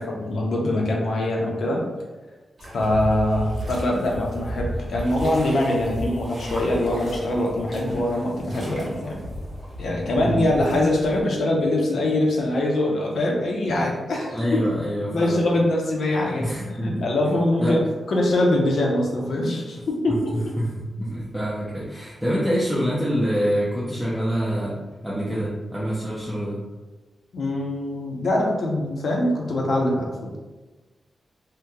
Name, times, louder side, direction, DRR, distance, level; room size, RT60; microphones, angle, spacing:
voice 1, 0.0-1.8 2.7-9.2 9.8-14.6 15.1-17.8 18.1-20.4 27.3-30.4, left 1 dB, 65° left, -1 dB, 0.6 m, -23 dB
sound 1, 2.6-11.2, equal, 30° right, 0.9 m, -34 dB
voice 2, 14.3-15.4 16.4-17.0 17.6-17.8 20.1-20.2 20.6-26.6, equal, ahead, -8 dB, 0.5 m, -26 dB
2.8 x 2.2 x 3.6 m, 1.2 s
wide cardioid pair, 175°, 0 cm